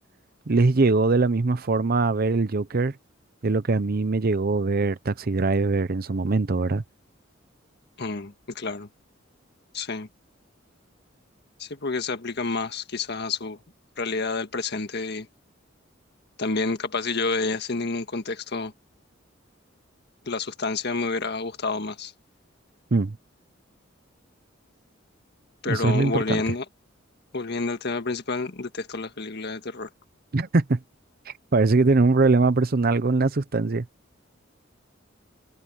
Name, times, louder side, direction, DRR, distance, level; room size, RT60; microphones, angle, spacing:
voice 1, 0.5-2.9 3.4-6.8 22.9-23.2 25.6-26.4 30.3-30.8 31.3-33.9, right 3 dB, 50° right, 0.7 m, -22 dB
voice 2, 8.0-8.9 9.7-10.1 11.6-13.6 14.0-15.3 16.4-18.7 20.3-22.1 25.6-26.7 27.3-29.9, left 3 dB, 60° left, 1.6 m, -29 dB
head